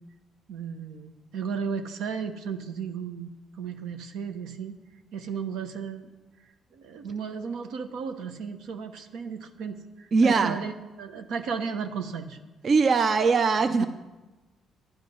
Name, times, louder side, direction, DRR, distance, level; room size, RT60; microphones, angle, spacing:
voice 1, 0.5-3.3 3.6-4.8 5.1-6.1 6.7-12.4 13.7-13.9, right 6 dB, 85° right, 7 dB, 1.0 m, -34 dB
voice 2, 10.1-10.6 12.6-13.9, right 4 dB, 50° right, 9 dB, 0.6 m, -21 dB
11.0 x 9.8 x 5.3 m, 1.1 s
cardioid pair, 90°, 0 cm